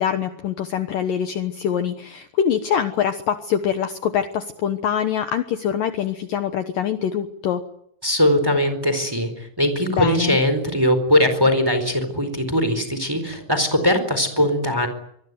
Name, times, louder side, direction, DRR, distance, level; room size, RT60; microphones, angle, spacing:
voice 1, 0.0-7.6 9.9-10.4, left 9 dB, 80° left, 8 dB, 2.0 m, -24 dB
voice 2, 8.0-14.9, left 1 dB, 5° right, 9 dB, 3.4 m, -20 dB
25.0 x 22.5 x 9.4 m, 0.74 s
omnidirectional pair, 5.7 m